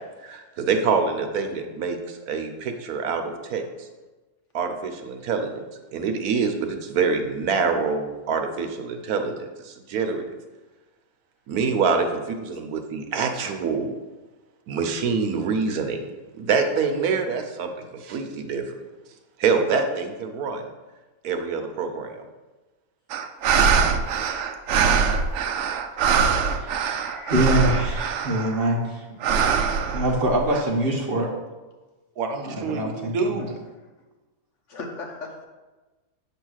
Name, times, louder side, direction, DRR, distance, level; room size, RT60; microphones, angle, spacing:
voice 1, 0.2-3.9 4.5-5.6 5.9-10.2 11.5-13.9 14.7-18.7 19.4-20.6 21.2-22.3 32.2-33.5, right 5 dB, 85° right, 5 dB, 1.3 m, -26 dB
sound 1, 23.1-28.6 29.2-30.6, right 6 dB, 65° right, 0.8 m, -23 dB
voice 2, 23.4-23.8 26.7-28.6 34.7-35.4, left 3 dB, 55° left, 1 dB, 1.3 m, -41 dB
voice 3, 26.6-29.1 29.9-31.3 32.4-33.5, right 1 dB, 45° right, 0 dB, 1.2 m, -25 dB
8.1 x 3.2 x 6.3 m, 1.2 s
omnidirectional pair, 1.5 m